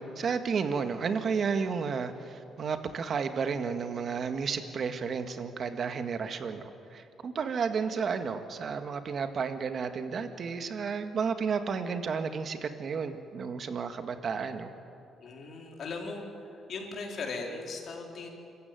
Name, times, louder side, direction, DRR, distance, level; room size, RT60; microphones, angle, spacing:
voice 1, 0.0-14.7, right 5 dB, 55° right, 8 dB, 1.8 m, -32 dB
voice 2, 15.2-18.3, left 3 dB, 60° left, 0 dB, 4.3 m, -38 dB
26.5 x 15.0 x 9.5 m, 2.8 s
cardioid pair, 90°, 0 cm